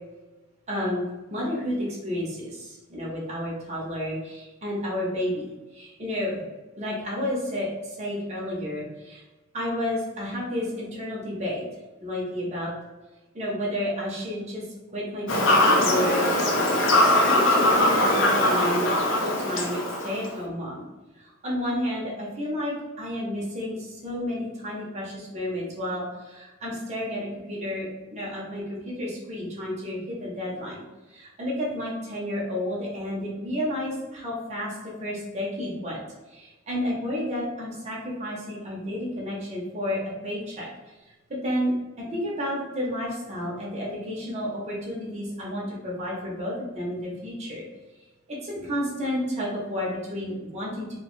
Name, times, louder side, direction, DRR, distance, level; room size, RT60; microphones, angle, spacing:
voice 1, 0.7-1.0 1.3-5.4 5.7-6.4 6.8-9.2 9.5-11.6 12.0-12.7 13.3-14.6 14.9-16.5 17.2-18.9 19.2-20.9 21.2-36.0 36.3-40.7 41.3-41.7 42.0-47.6 48.3-51.0, left 1 dB, 30° right, -4 dB, 0.6 m, -31 dB
Fowl / Bird vocalization bird call bird song, 15.3-20.3, left 1 dB, 65° left, 0.5 m, -21 dB
2.8 x 2.1 x 3.0 m, 1.1 s
head